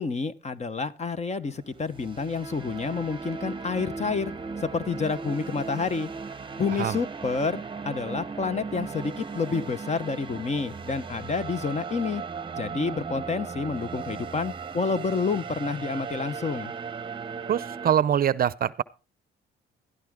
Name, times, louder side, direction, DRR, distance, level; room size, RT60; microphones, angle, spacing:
voice 1, 0.0-4.3 4.6-6.1 6.6-12.2 12.6-16.7, left 4 dB, 35° left, 1.0 m, -29 dB
sound 1, 1.7-17.9, right 5 dB, 25° right, 0.9 m, -37 dB
voice 2, 17.5-18.8, right 9 dB, 50° right, 0.6 m, -24 dB
14.0 x 12.5 x 3.7 m
cardioid pair, 90°, 20 cm